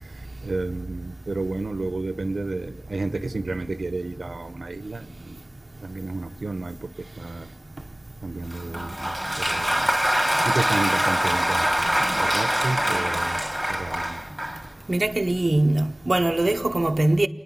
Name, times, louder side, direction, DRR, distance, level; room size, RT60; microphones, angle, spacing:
voice 1, 0.0-5.4 5.8-7.5 8.2-9.9 10.4-13.4 13.7-14.2, right 3 dB, 85° right, 0.8 m, -31 dB
Applause, 8.5-14.7, right 1 dB, 10° right, 3.3 m, -24 dB
voice 2, 14.9-17.3, right 2 dB, 50° right, 0.8 m, -22 dB
28.5 x 10.0 x 9.5 m
wide cardioid pair, 45°, 0 cm